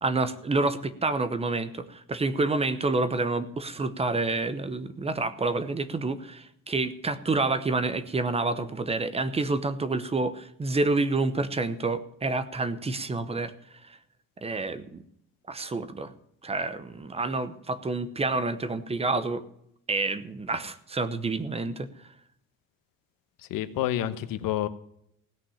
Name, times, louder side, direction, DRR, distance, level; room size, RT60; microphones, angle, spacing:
voice 1, 0.0-13.5 14.4-15.0 15.5-16.1 16.4-19.5 19.9-21.9, right 3 dB, 20° right, 13 dB, 0.8 m, -28 dB
voice 2, 23.5-24.7, left 12 dB, 90° left, 12 dB, 1.2 m, -28 dB
17.0 x 6.0 x 9.9 m, 0.72 s
cardioid pair, 165°, 33 cm